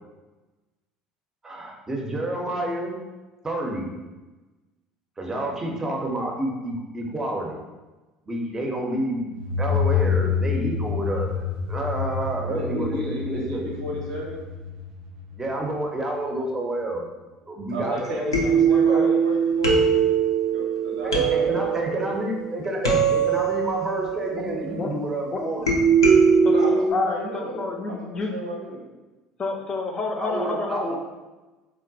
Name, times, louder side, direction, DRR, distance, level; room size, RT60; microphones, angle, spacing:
voice 1, 1.4-3.0 3.4-3.9 5.2-7.6 8.3-9.3 9.6-13.7 15.3-17.0 17.5-19.1 21.0-25.8 30.2-31.0, right 1 dB, 20° right, 0 dB, 0.6 m, -29 dB
sound 1, 9.3-15.9, left 6 dB, 65° right, 0.3 m, -28 dB
voice 2, 12.4-14.4 17.7-20.1 20.5-22.1 26.4-28.8, equal, 85° right, -4 dB, 0.8 m, -33 dB
sound 2, 18.0-18.1 18.3-25.1 25.7-26.9, right 6 dB, 85° left, 0.5 m, -21 dB
voice 3, 26.4-28.3 29.4-31.0, left 3 dB, 35° left, 1 dB, 0.5 m, -29 dB
3.8 x 2.1 x 2.6 m, 1.2 s
figure-of-eight pair, 65°, 3 cm